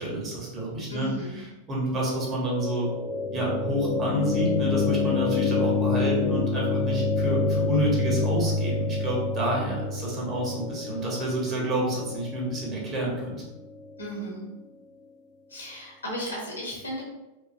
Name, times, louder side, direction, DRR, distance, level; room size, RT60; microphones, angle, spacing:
voice 1, 0.0-1.1 1.7-2.9 3.3-13.3, right 1 dB, 30° right, -3 dB, 0.9 m, -29 dB
voice 2, 0.9-1.4 14.0-14.5 15.5-17.0, equal, 75° left, -3 dB, 0.9 m, -35 dB
sound 1, 1.9-13.9, left 3 dB, 30° left, 0.4 m, -28 dB
2.6 x 2.3 x 2.5 m, 1.0 s
figure-of-eight pair, 90°, 0 cm